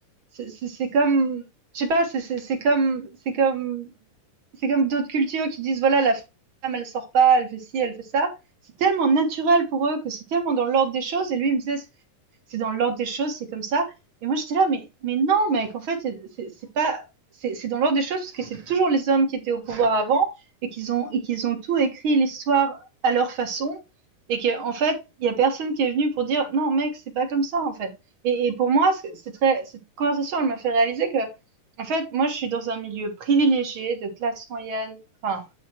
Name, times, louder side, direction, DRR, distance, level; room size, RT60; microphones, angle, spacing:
voice 1, 0.4-1.4 1.7-3.9 4.6-6.2 6.6-8.3 8.8-11.8 12.5-13.9 14.2-17.0 17.4-20.3 20.7-23.8 24.3-26.9 27.1-27.9 28.2-29.6 30.0-31.3 31.8-35.4, right 4 dB, 50° right, 4 dB, 1.7 m, -23 dB
9.7 x 4.1 x 4.5 m, 0.25 s
omnidirectional pair, 4.1 m